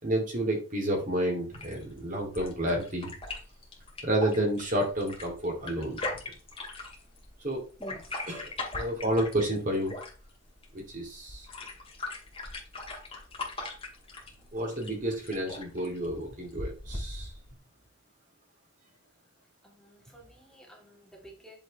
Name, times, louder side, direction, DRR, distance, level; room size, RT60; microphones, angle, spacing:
voice 1, 0.0-3.1 4.0-6.0 7.4-7.6 8.3-9.9 10.7-11.5 14.5-17.3, right 1 dB, 40° right, 1 dB, 3.0 m, -30 dB
sound 1, 1.5-17.5, left 2 dB, 30° left, 2.4 m, -41 dB
voice 2, 7.8-8.2 19.6-21.6, equal, ahead, -2 dB, 2.3 m, -50 dB
8.9 x 6.8 x 3.3 m, 0.35 s
head